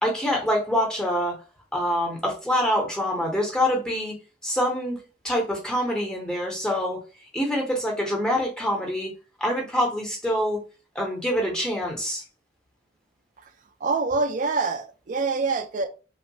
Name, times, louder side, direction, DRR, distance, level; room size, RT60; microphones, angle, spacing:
voice 1, 0.0-1.4 1.7-4.2 4.4-5.0 5.2-7.0 7.3-9.1 9.4-10.6 10.9-12.2, equal, 5° left, 0.6 m, -25 dB
voice 2, 13.8-15.9, right 4 dB, 45° right, 0.4 m, -25 dB
3.0 x 2.2 x 2.6 m
head